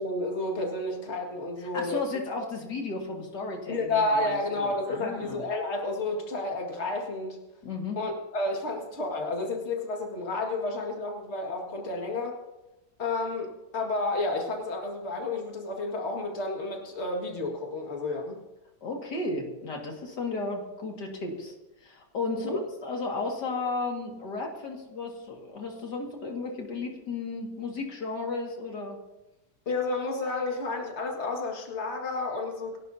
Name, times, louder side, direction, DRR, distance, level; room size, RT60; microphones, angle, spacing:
voice 1, 0.0-2.2 3.7-7.4 8.0-12.4 13.0-18.4 22.3-22.6 29.7-32.8, left 2 dB, 40° left, 1 dB, 2.2 m, -31 dB
voice 2, 1.7-5.4 7.6-8.0 18.8-21.5 21.8-29.0, left 3 dB, 80° left, 1 dB, 2.7 m, -34 dB
28.0 x 11.5 x 2.8 m, 0.98 s
omnidirectional pair, 1.8 m